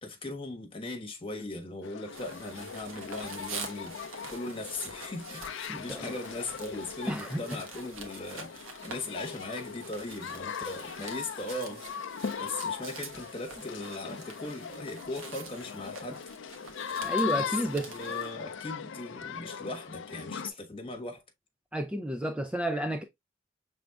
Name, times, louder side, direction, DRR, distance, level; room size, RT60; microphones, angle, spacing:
voice 1, 0.0-4.0 4.3-11.8 12.4-16.2 17.4-21.2, left 2 dB, 25° left, 1.3 m, -39 dB
sound 1, 1.8-20.5, left 7 dB, 65° left, 0.5 m, -39 dB
sound 2, 2.1-18.3, right 4 dB, 85° right, 1.2 m, -46 dB
voice 2, 5.7-6.1 7.1-7.4 17.0-17.9 21.7-23.0, right 1 dB, 5° right, 0.4 m, -31 dB
6.2 x 3.5 x 2.3 m
head